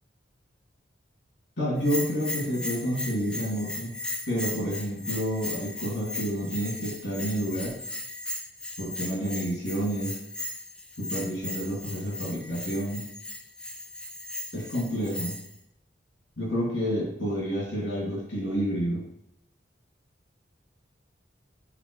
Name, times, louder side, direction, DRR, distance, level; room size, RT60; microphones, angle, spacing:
voice 1, 1.6-3.9 4.3-7.7 8.8-10.2 11.0-13.0 14.5-15.3 16.4-19.0, equal, 70° left, -5 dB, 2.4 m, -29 dB
Bell, 1.8-15.6, left 1 dB, 5° left, 0.4 m, -37 dB
7.7 x 4.1 x 3.1 m, 0.79 s
head